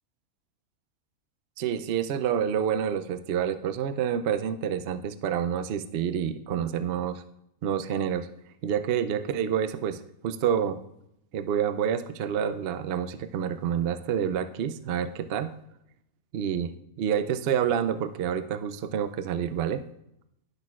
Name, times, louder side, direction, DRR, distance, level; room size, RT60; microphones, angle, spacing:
voice 1, 1.6-7.2 7.6-8.3 8.6-10.8 11.3-15.5 16.3-16.7 17.0-19.8, right 8 dB, 65° right, 10 dB, 0.6 m, -28 dB
16.5 x 6.3 x 2.4 m, 0.79 s
omnidirectional pair, 1.6 m